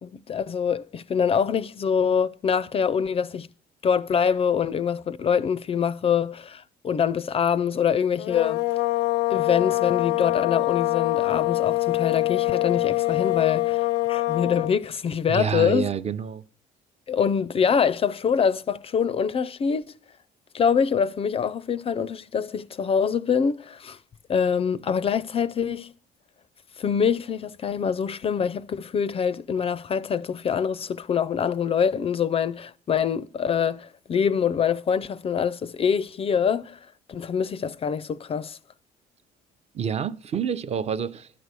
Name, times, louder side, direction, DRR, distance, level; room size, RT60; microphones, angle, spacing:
voice 1, 0.0-3.5 3.8-8.6 9.3-15.9 17.1-19.8 20.5-24.0 24.3-25.9 26.8-36.8 37.1-38.6, left 7 dB, 35° left, 0.4 m, -25 dB
sound 1, 8.2-14.8, left 20 dB, 90° left, 0.5 m, -24 dB
voice 2, 15.3-16.4 39.7-41.3, right 7 dB, 40° right, 0.6 m, -28 dB
12.0 x 4.7 x 8.2 m
cardioid pair, 110°, 17 cm